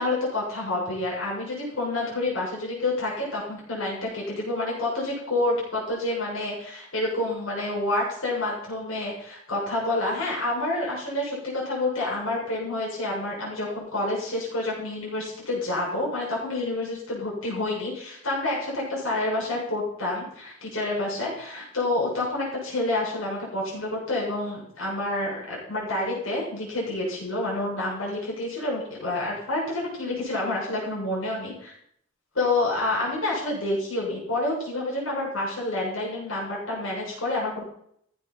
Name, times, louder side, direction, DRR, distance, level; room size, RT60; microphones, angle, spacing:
voice 1, 0.0-31.7 32.3-37.6, left 2 dB, 75° left, -4 dB, 7.0 m, -28 dB
15.5 x 8.6 x 5.8 m, 0.67 s
head